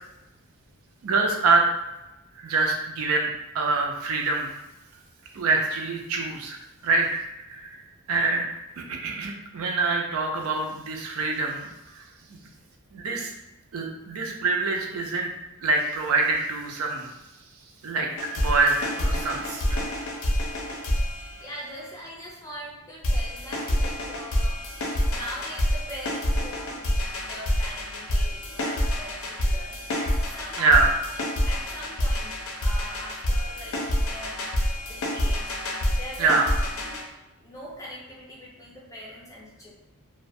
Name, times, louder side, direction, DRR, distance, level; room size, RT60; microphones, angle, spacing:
voice 1, 1.0-1.7 2.4-3.3 3.5-4.5 5.3-6.6 6.8-7.1 7.5-7.8 8.1-8.4 8.8-12.0 12.3-12.4 12.9-13.3 13.7-15.3 15.6-17.1 17.8-18.1 18.4-19.8 30.6-30.9 36.2-36.5, right 3 dB, 70° right, 1 dB, 0.4 m, -25 dB
sound 1, 18.2-21.9 23.0-37.0, left 1 dB, 65° left, 0.5 m, -27 dB
voice 2, 21.4-24.6 25.1-30.7 31.1-34.5 34.9-37.1 37.4-39.7, equal, 15° left, -5 dB, 0.5 m, -42 dB
2.3 x 2.1 x 2.6 m, 0.97 s
head